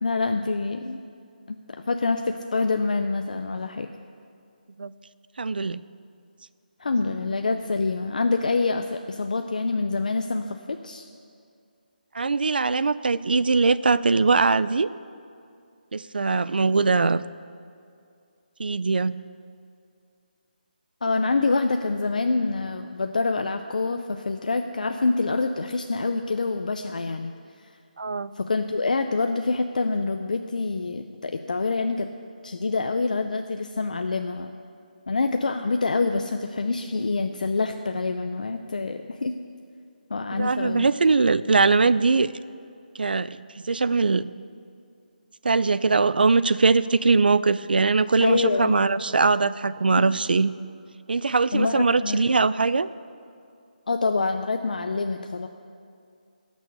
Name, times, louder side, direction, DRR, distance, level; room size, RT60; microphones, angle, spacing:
voice 1, 0.0-1.0 1.5-3.9 6.8-11.1 21.0-27.3 28.4-32.1 32.4-34.5 35.1-39.4 40.1-40.9 48.2-48.8 50.0-50.1 51.5-52.2 53.9-55.5, left 3 dB, 55° left, 6 dB, 0.6 m, -26 dB
voice 2, 5.4-5.8 12.1-14.9 15.9-17.2 18.6-19.2 28.0-28.3 40.3-42.3 43.0-44.3 45.4-50.5 51.1-52.9, right 4 dB, 80° right, 16 dB, 0.5 m, -21 dB
18.0 x 6.3 x 6.7 m, 2.4 s
hypercardioid pair, 180°, 5 cm